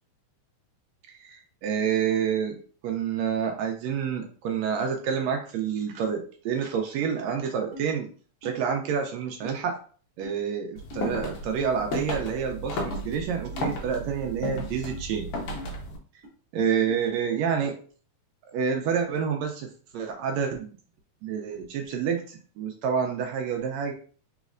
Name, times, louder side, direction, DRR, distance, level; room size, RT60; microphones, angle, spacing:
voice 1, 1.2-2.6 2.8-8.1 8.4-9.8 10.2-15.3 16.5-17.7 18.5-19.7 19.9-20.7 21.2-23.9, right 7 dB, 80° right, 3 dB, 1.6 m, -28 dB
sound 1, 7.0-7.2 7.7-7.9 8.4-8.6 9.4-9.5 10.2-10.4 10.9-11.0 11.6-11.7 12.2-12.3 12.9-13.0 13.5-13.7 14.2-14.4 14.9-15.0 15.5-15.7 16.2-16.3 16.9-17.0, equal, 10° right, 1.1 m, -41 dB
sound 2, 10.8-16.0, left 1 dB, 80° left, 1.2 m, -34 dB
4.1 x 4.0 x 2.4 m, 0.41 s
omnidirectional pair, 3.6 m